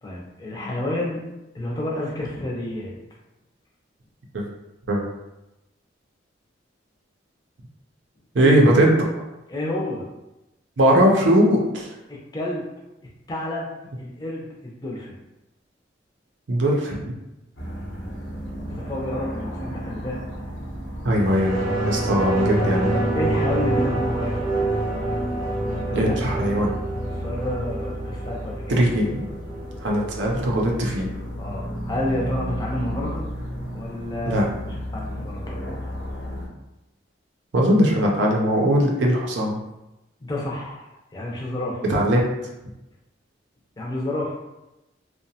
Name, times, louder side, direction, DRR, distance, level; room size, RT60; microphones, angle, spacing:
voice 1, 0.0-1.2 1.5-2.9 8.4-8.6 9.5-10.1 12.1-12.6 13.3-13.7 14.0-15.1 17.6-18.1 18.7-20.3 22.1-24.4 25.9-26.6 27.2-28.8 31.4-33.2 33.7-34.4 34.9-35.6 40.2-40.8 41.1-41.8 43.8-44.3, left 1 dB, 20° left, -4 dB, 0.5 m, -30 dB
voice 2, 8.3-9.1 10.8-11.9 16.5-17.1 21.0-22.9 25.9-26.7 28.7-29.2 29.8-31.1 34.3-34.5 37.5-39.6 41.9-42.2, equal, 75° right, -1 dB, 0.5 m, -20 dB
sound 1, 17.6-36.5, equal, 80° left, 0.8 m, -33 dB
sound 2, 21.2-30.3 30.6-30.7, right 2 dB, 25° right, 0.7 m, -27 dB
2.7 x 2.1 x 2.7 m, 0.95 s
head